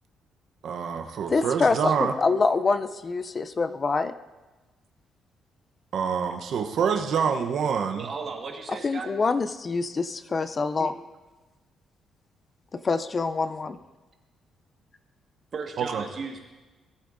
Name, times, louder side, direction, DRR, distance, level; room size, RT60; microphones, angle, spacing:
voice 1, 0.6-2.1 5.9-8.1 10.8-10.9 15.8-16.0, right 6 dB, 65° right, 5 dB, 0.8 m, -26 dB
voice 2, 1.3-4.1 8.8-10.9 12.7-13.8, left 4 dB, 35° left, 12 dB, 0.5 m, -25 dB
voice 3, 8.0-9.1 15.5-16.4, right 4 dB, 45° right, 3 dB, 1.5 m, -35 dB
18.0 x 8.6 x 2.6 m, 1.2 s
cardioid pair, 90°, 0 cm